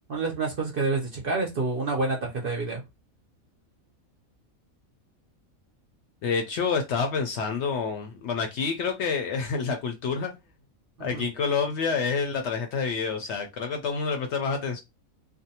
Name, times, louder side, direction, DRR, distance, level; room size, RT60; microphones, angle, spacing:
voice 1, 0.1-2.8 11.0-11.2, right 3 dB, 55° right, 0.7 m, -28 dB
voice 2, 6.2-10.3 11.0-14.8, left 5 dB, 65° left, 0.7 m, -28 dB
2.6 x 2.0 x 2.7 m
omnidirectional pair, 1.4 m